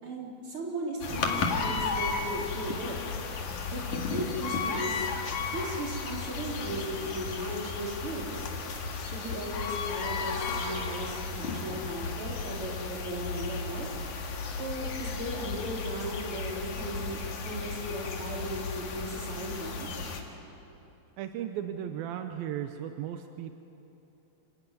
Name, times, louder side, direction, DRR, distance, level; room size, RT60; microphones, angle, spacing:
voice 1, 0.0-3.0 3.7-5.1 5.5-8.5 9.1-13.9 14.6-19.9, right 1 dB, 35° right, -2 dB, 4.4 m, -37 dB
sound 1, 1.0-20.2, left 4 dB, 55° left, 3.0 m, -34 dB
voice 2, 21.2-23.5, right 10 dB, 85° right, 7 dB, 2.6 m, -36 dB
27.0 x 16.0 x 9.5 m, 2.9 s
omnidirectional pair, 4.2 m